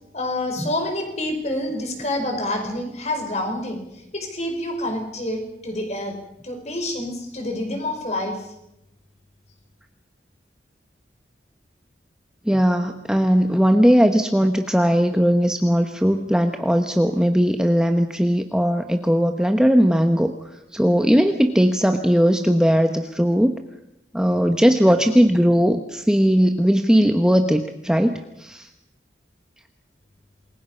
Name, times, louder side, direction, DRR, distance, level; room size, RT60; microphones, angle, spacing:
voice 1, 0.1-3.8 4.1-6.1 6.4-8.5, left 1 dB, 35° left, 4 dB, 5.1 m, -27 dB
voice 2, 12.5-23.6 24.1-28.7, equal, 5° right, 6 dB, 0.9 m, -18 dB
28.0 x 21.5 x 5.6 m, 0.85 s
head